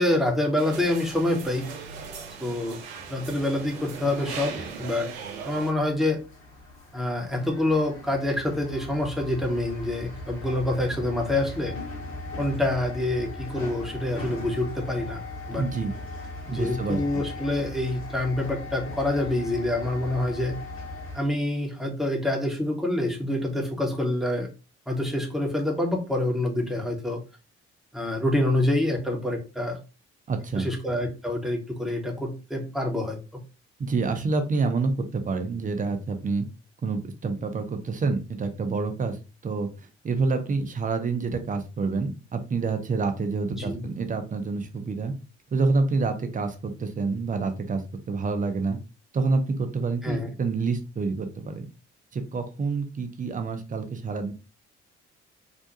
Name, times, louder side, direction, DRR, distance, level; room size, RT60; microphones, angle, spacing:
voice 1, 0.0-1.7 2.4-2.8 3.1-5.1 5.4-6.2 6.9-11.8 12.4-15.2 15.5-15.7 16.5-20.6 21.1-24.5 24.9-27.2 27.9-29.8 30.6-33.4 43.5-43.8 50.0-50.3, left 1 dB, ahead, 0 dB, 0.9 m, -26 dB
sound 1, 0.6-5.7, right 6 dB, 70° right, 0.6 m, -39 dB
sound 2, 3.0-21.2, left 2 dB, 40° left, 1.1 m, -39 dB
voice 2, 15.5-15.9 16.5-17.2 30.3-30.7 33.8-36.4 36.8-39.2 39.4-39.7 40.0-45.1 45.5-47.8 48.1-48.8 49.1-51.7 52.1-54.3, right 4 dB, 25° right, 7 dB, 0.6 m, -27 dB
2.5 x 2.2 x 2.8 m, 0.31 s
figure-of-eight pair, 45°, 33 cm